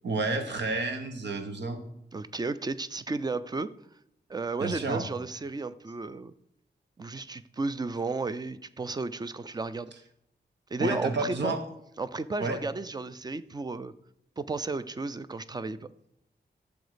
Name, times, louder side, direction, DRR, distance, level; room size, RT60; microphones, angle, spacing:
voice 1, 0.0-1.8 4.6-5.0 10.8-11.6 12.4-12.6, right 3 dB, 85° right, 1.5 m, -30 dB
voice 2, 2.1-3.7 4.3-6.3 7.0-9.9 10.7-11.5 12.0-13.9 14.4-15.9, right 3 dB, 25° right, 0.4 m, -33 dB
12.0 x 7.0 x 5.0 m
wide cardioid pair, 170°, 18 cm